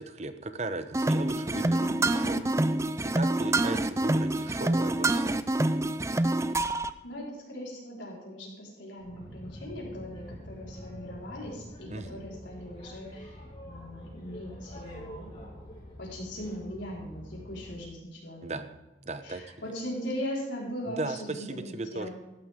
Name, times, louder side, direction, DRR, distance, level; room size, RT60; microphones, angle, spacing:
voice 1, 0.0-2.4 3.1-5.4 11.9-12.2 18.4-18.7 19.0-19.4 20.9-22.1, right 2 dB, 35° right, 10 dB, 0.9 m, -36 dB
sound 1, 0.9-6.9, right 2 dB, 15° right, 0.4 m, -26 dB
voice 2, 1.5-2.6 6.8-13.4 13.6-15.3 16.0-18.6 19.2-22.1, equal, 85° left, -4 dB, 4.6 m, -39 dB
Boat Water vehicle, 9.0-17.8, equal, 30° left, 3.8 m, -46 dB
15.0 x 12.0 x 3.7 m, 1.1 s
head